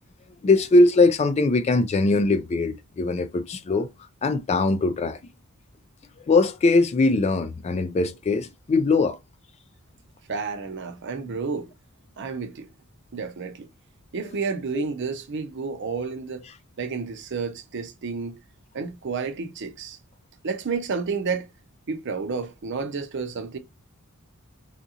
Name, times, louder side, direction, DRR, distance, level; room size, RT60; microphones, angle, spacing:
voice 1, 0.4-3.9 4.2-5.2 6.2-9.2 14.7-14.8, left 3 dB, 30° left, 0.3 m, -21 dB
voice 2, 10.3-11.7 12.2-12.7 13.1-13.7 14.1-16.5 16.8-18.4 18.7-20.0 20.4-21.5 21.9-23.6, right 5 dB, 55° right, 0.5 m, -30 dB
3.6 x 2.4 x 2.7 m
head